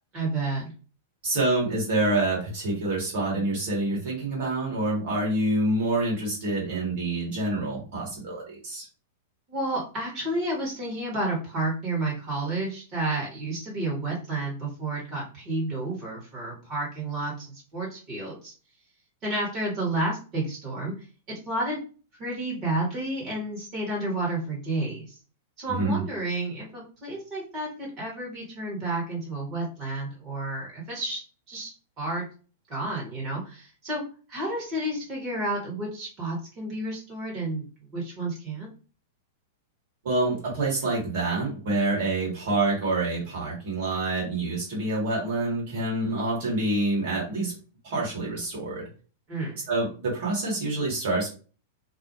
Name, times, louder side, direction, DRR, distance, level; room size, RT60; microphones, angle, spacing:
voice 1, 0.1-0.7 9.5-18.5 19.2-20.9 21.3-21.8 22.2-25.2 25.6-31.2 31.5-32.2 32.7-34.0 34.3-37.6 37.9-38.7 49.3-49.6, right 2 dB, 30° right, -4 dB, 1.2 m, -31 dB
voice 2, 1.2-8.9 25.7-26.0 40.0-47.5 47.8-48.9 49.7-51.3, right 2 dB, 55° right, -4 dB, 1.3 m, -27 dB
2.4 x 2.1 x 2.8 m, 0.36 s
figure-of-eight pair, 95°, 0 cm